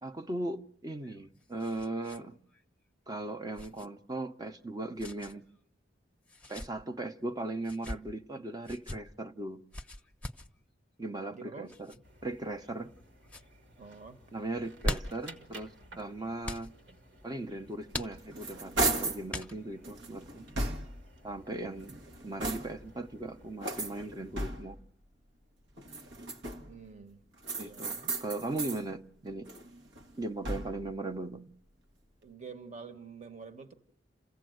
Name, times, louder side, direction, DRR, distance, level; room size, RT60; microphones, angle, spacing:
voice 1, 0.0-2.4 3.1-5.4 6.5-9.6 11.0-11.9 12.2-12.9 14.3-16.7 17.2-20.4 21.2-24.8 27.6-29.5 30.2-31.5, right 2 dB, 20° right, 0.8 m, -38 dB
sound 1, 0.9-2.2 2.5-2.6 3.5-3.9 5.0-5.3 6.3-6.7 7.6-8.0 8.6-9.0 9.7-10.5 11.7-12.0 12.6-13.0 13.2-13.5 14.5-15.3 16.4-16.7 17.9-18.5 19.3-19.8, left 1 dB, 10° left, 0.9 m, -39 dB
voice 2, 11.3-11.7 13.8-14.2 26.6-27.2 27.5-28.0 32.2-33.7, right 5 dB, 40° right, 1.4 m, -47 dB
sound 2, 12.0-24.4, right 1 dB, 70° right, 2.0 m, -56 dB
sound 3, 17.9-19.3 19.8-21.1 21.7-22.9 23.6-24.9 25.8-26.8 27.4-28.8 29.2-30.9, right 2 dB, 85° right, 1.7 m, -36 dB
28.5 x 16.0 x 7.9 m
head